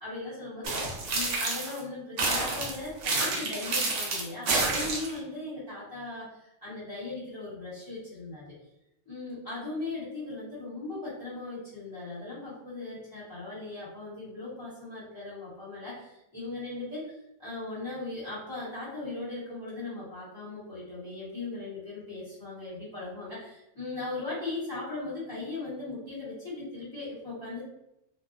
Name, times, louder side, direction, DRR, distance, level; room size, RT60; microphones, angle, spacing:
voice 1, 0.0-8.4 9.1-27.6, left 2 dB, 20° left, -10 dB, 0.9 m, -38 dB
sound 1, 0.6-1.8 2.2-5.2, right 3 dB, 70° right, 1.0 m, -29 dB
2.7 x 2.1 x 2.4 m, 0.85 s
omnidirectional pair, 1.3 m